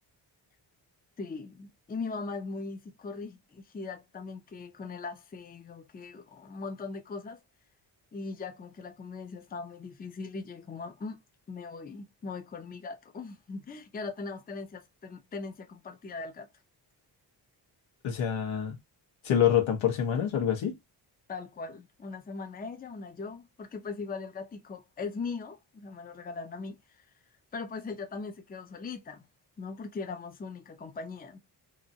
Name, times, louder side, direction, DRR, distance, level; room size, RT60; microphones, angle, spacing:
voice 1, 1.2-7.4 8.1-11.2 11.5-16.5 21.3-26.8 27.5-29.3 29.6-31.4, left 4 dB, 20° left, 0.5 m, -40 dB
voice 2, 18.0-18.8 19.2-20.8, left 9 dB, 85° left, 1.0 m, -26 dB
2.8 x 2.6 x 2.5 m
cardioid pair, 90°, 45 cm